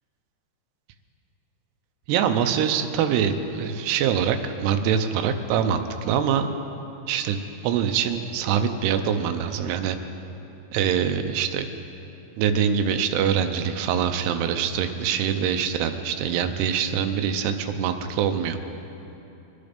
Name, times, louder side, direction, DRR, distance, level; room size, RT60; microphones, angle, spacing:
voice 1, 2.1-6.5 7.1-10.0 10.7-11.7 12.4-18.6, right 8 dB, 80° right, 7 dB, 2.7 m, -24 dB
22.5 x 9.4 x 5.2 m, 2.9 s
omnidirectional pair, 4.9 m